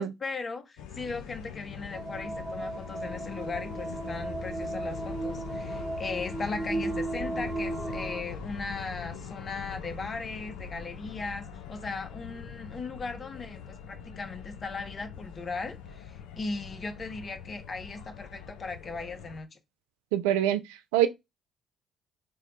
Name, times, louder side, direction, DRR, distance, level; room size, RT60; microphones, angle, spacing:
voice 1, 0.0-19.6, left 3 dB, 40° left, 0.7 m, -38 dB
sound 1, 0.8-19.4, left 7 dB, 75° left, 0.4 m, -42 dB
sound 2, 1.9-8.2, right 2 dB, 25° right, 1.0 m, -35 dB
voice 2, 20.1-20.6 20.9-21.1, right 12 dB, 80° right, 0.3 m, -23 dB
4.5 x 2.1 x 3.1 m
hypercardioid pair, 50°, 0 cm